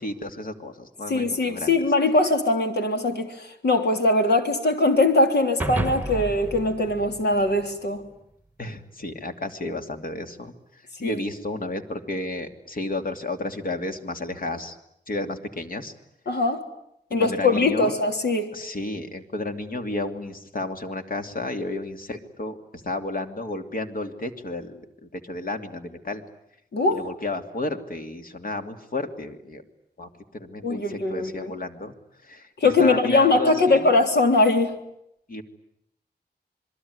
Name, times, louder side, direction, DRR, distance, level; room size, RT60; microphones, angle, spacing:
voice 1, 0.0-1.7 8.6-14.8 15.1-15.9 17.2-18.0 18.5-22.6 22.8-26.2 26.9-29.6 30.0-31.9 32.2-33.9 35.3-35.4, left 2 dB, 55° left, 6 dB, 2.8 m, -32 dB
voice 2, 1.1-8.0 11.0-11.2 16.3-16.6 17.1-18.5 26.7-27.1 30.6-31.5 32.6-34.7, left 2 dB, 75° left, 5 dB, 3.4 m, -21 dB
sound 1, 5.6-8.1, right 2 dB, 10° right, 1.2 m, -31 dB
27.0 x 22.0 x 9.7 m, 0.76 s
wide cardioid pair, 115°, 17 cm